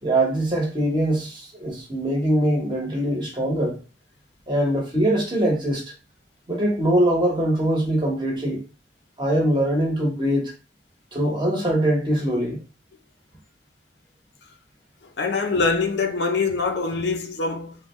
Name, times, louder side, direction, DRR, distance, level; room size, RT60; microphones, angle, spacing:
voice 1, 0.0-3.8 4.5-5.8 6.5-8.6 9.2-10.5 11.1-12.6, right 1 dB, 25° right, 1.1 m, -22 dB
voice 2, 15.2-17.8, left 4 dB, 75° left, 0.6 m, -24 dB
3.6 x 2.2 x 3.1 m
head